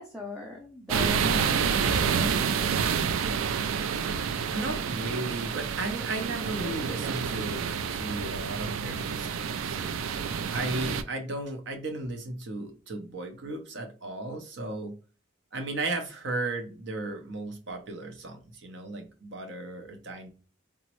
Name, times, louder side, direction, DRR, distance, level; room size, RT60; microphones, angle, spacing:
voice 1, 0.0-3.0, equal, 5° right, -1 dB, 0.4 m, -37 dB
sound 1, 0.9-11.0, right 6 dB, 80° right, 0.3 m, -29 dB
voice 2, 4.5-10.0 10.5-14.9 15.5-20.3, right 2 dB, 60° right, 5 dB, 0.7 m, -35 dB
3.5 x 2.0 x 2.9 m, 0.36 s
head